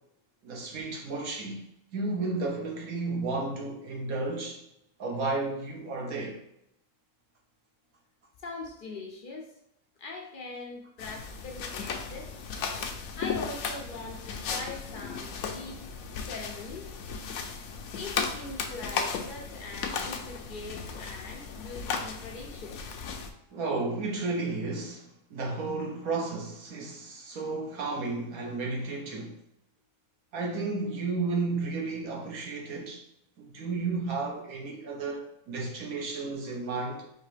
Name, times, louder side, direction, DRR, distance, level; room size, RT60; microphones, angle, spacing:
voice 1, 0.4-1.6 1.9-4.6 5.0-6.4 23.5-29.4 30.3-33.0 33.4-37.0, right 3 dB, 75° right, 1.3 m, -33 dB
voice 2, 8.4-9.5 10.0-12.3 13.2-15.9 16.3-16.8 18.0-22.9, left 3 dB, 55° left, 0.5 m, -42 dB
sound 1, 11.0-23.3, left 5 dB, 75° left, 1.0 m, -36 dB
4.6 x 2.9 x 3.3 m
omnidirectional pair, 1.6 m